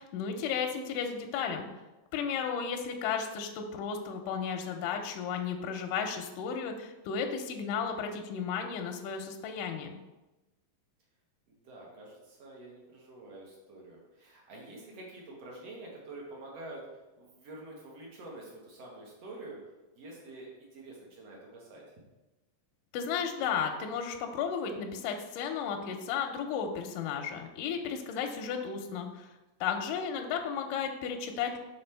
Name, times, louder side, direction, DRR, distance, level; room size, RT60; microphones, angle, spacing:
voice 1, 0.0-1.7 2.1-10.0 22.9-29.3 29.6-31.6, left 7 dB, 80° left, 4 dB, 1.9 m, -34 dB
voice 2, 2.2-2.6 11.5-16.8 17.1-19.6 20.0-21.8 29.8-30.0, right 2 dB, 60° right, -2 dB, 1.8 m, -47 dB
5.9 x 4.1 x 4.4 m, 1.1 s
omnidirectional pair, 4.2 m